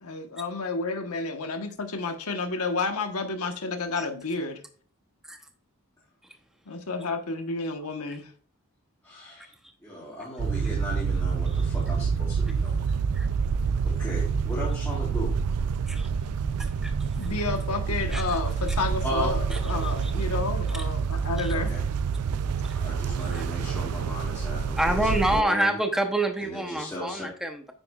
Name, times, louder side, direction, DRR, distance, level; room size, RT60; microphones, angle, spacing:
voice 1, 0.0-4.6 6.7-8.3 17.2-21.7, left 3 dB, 90° left, 1.2 m, -30 dB
voice 2, 9.0-9.5 9.8-12.9 13.8-15.3 19.0-19.3 19.7-19.8 21.5-21.8 22.7-25.8 26.4-27.3, left 1 dB, 15° left, 3.3 m, -36 dB
sound 1, 10.4-25.4, right 6 dB, 90° right, 0.4 m, -27 dB
voice 3, 16.6-16.9 18.1-18.2 19.5-20.1 20.7-20.8 21.4-21.5 23.3-23.4 24.8-27.7, right 1 dB, ahead, 0.8 m, -28 dB
9.5 x 8.3 x 2.4 m
head